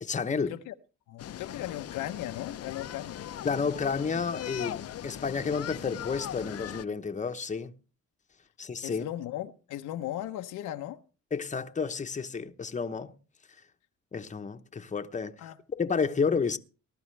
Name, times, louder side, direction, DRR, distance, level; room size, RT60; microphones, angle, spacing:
voice 1, 0.0-0.6 3.4-7.7 8.6-9.1 11.3-13.1 14.1-15.4 15.7-16.6, left 5 dB, 25° left, 0.9 m, -31 dB
voice 2, 1.1-3.2 8.8-11.0 15.4-15.6, left 13 dB, 90° left, 0.9 m, -37 dB
sound 1, 1.2-6.8, left 11 dB, 55° left, 0.6 m, -39 dB
19.5 x 12.0 x 3.3 m
cardioid pair, 90°, 30 cm